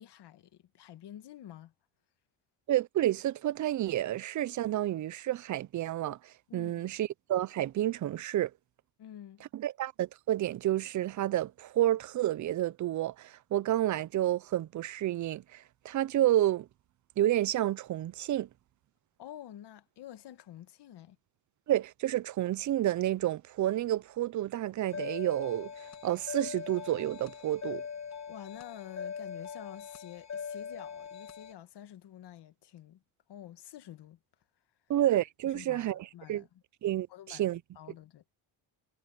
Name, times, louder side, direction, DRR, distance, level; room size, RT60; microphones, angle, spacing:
voice 1, 0.0-1.7 6.5-6.8 9.0-9.4 19.2-21.2 28.3-33.0 33.3-34.2 35.4-36.5 37.1-38.2, left 11 dB, 55° left, 1.5 m, -49 dB
voice 2, 2.7-8.5 9.5-16.7 17.2-18.5 21.7-27.8 34.9-36.4 36.8-37.6, right 13 dB, 40° right, 0.5 m, -30 dB
sound 1, 24.9-31.5, left 7 dB, 35° left, 1.6 m, -41 dB
cardioid pair, 125°, 47 cm